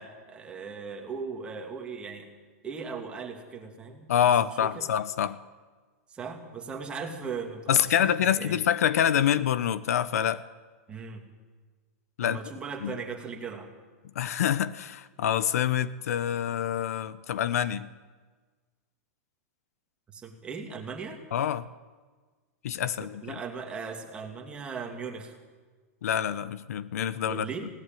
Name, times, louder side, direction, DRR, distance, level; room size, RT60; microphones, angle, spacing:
voice 1, 0.0-2.3 2.6-4.1 4.6-4.9 6.1-8.6 10.9-11.2 12.2-13.7 20.1-21.2 23.0-25.3 27.2-27.7, right 5 dB, 10° right, 2 dB, 2.4 m, -38 dB
voice 2, 4.1-5.4 7.7-10.4 12.2-12.4 12.8-13.0 14.1-17.9 21.3-21.7 22.6-23.4 26.0-27.4, left 9 dB, 75° left, 16 dB, 0.9 m, -26 dB
20.0 x 17.5 x 9.2 m, 1.4 s
supercardioid pair, 165°, 8 cm